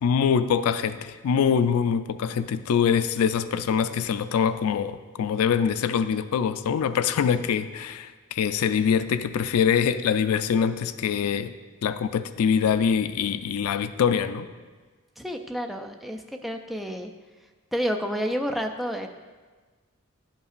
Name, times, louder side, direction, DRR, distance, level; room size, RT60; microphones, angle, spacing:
voice 1, 0.0-11.5 11.8-14.5, left 7 dB, 75° left, 12 dB, 0.3 m, -24 dB
voice 2, 15.2-17.1 17.7-19.1, equal, ahead, 3 dB, 0.3 m, -30 dB
10.5 x 5.5 x 2.4 m, 1.4 s
head